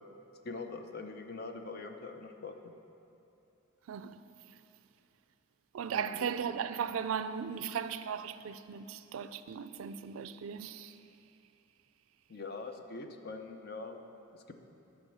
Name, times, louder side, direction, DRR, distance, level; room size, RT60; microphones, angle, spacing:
voice 1, 0.4-2.5 5.9-6.3 12.3-14.0, left 3 dB, 50° left, 0.6 m, -43 dB
voice 2, 3.9-4.6 5.7-11.0, right 7 dB, 85° right, 0.4 m, -37 dB
11.5 x 4.4 x 6.3 m
head